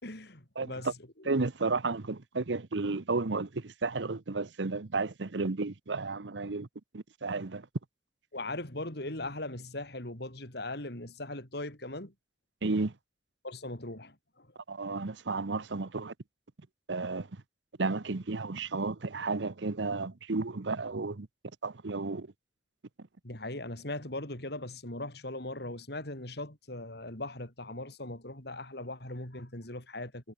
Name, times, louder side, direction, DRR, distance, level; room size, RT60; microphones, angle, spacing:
voice 1, 0.0-1.3 8.3-12.1 13.4-14.5 23.2-30.3, left 2 dB, 65° left, 5.1 m, -39 dB
voice 2, 1.3-6.7 6.9-7.7 12.6-12.9 14.7-16.1 16.9-17.3 17.8-21.3 21.6-22.3, right 3 dB, 80° right, 0.9 m, -32 dB
head